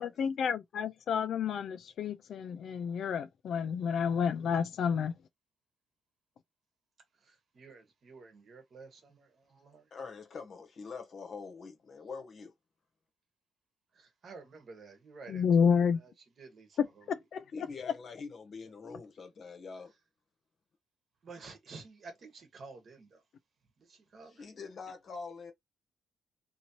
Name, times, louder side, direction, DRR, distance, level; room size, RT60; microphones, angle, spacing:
voice 1, 0.0-5.1 15.3-16.0 17.1-17.4, left 6 dB, 60° left, 0.3 m, -30 dB
voice 2, 7.1-9.9 13.9-17.1 21.2-23.2 23.8-24.5, right 4 dB, 45° right, 1.1 m, -52 dB
voice 3, 9.9-12.5 17.5-19.9 24.4-25.5, left 4 dB, 45° left, 1.0 m, -44 dB
3.0 x 2.7 x 2.7 m
cardioid pair, 125°, 0 cm